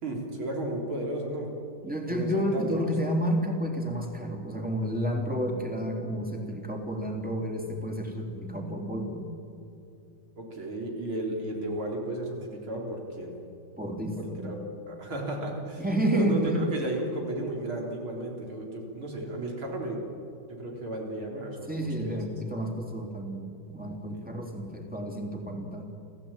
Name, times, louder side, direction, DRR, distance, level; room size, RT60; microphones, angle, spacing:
voice 1, 0.0-1.5 2.1-2.9 10.4-13.3 14.2-14.6 14.9-15.8 16.1-20.1 20.5-22.2 24.1-24.3, right 1 dB, 85° right, 0 dB, 4.7 m, -34 dB
voice 2, 1.8-9.3 13.8-14.6 15.8-16.6 21.7-25.8, equal, 5° right, 1 dB, 3.2 m, -30 dB
29.0 x 15.0 x 9.0 m, 2.7 s
omnidirectional pair, 2.2 m